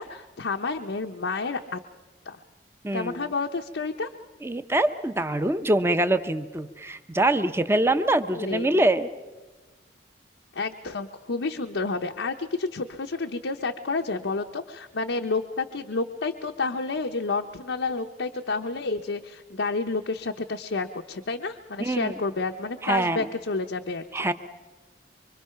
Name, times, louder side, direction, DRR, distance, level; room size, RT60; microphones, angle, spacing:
voice 1, 0.0-1.8 2.3-2.4 2.9-4.1 8.3-8.8 10.5-24.3, left 3 dB, 80° left, 3 dB, 0.8 m, -30 dB
voice 2, 2.8-3.2 4.4-9.1 21.8-22.2 22.8-23.3 24.1-24.3, right 1 dB, 15° right, 10 dB, 0.7 m, -24 dB
24.5 x 24.5 x 5.7 m, 1.2 s
head